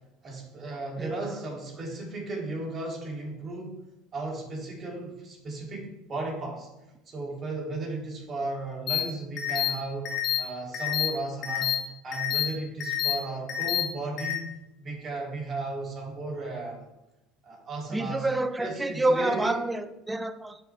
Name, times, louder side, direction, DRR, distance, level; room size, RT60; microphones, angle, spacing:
voice 1, 0.2-3.7 4.1-6.7 7.1-10.1 10.4-11.7 12.0-14.5 14.8-16.8 17.5-18.3 18.6-19.6, right 2 dB, 35° right, -2 dB, 3.5 m, -35 dB
voice 2, 1.0-1.4 17.9-20.6, right 2 dB, 10° right, 11 dB, 0.8 m, -28 dB
sound 1, 8.9-9.0 9.4-9.7 10.0-10.4 10.7-11.1 11.4-11.7 12.1-12.4 12.8-13.1 13.5-13.8 14.2-14.3, left 11 dB, 50° left, 2.9 m, -27 dB
10.5 x 6.7 x 3.7 m, 0.95 s
hypercardioid pair, 75°, 0 cm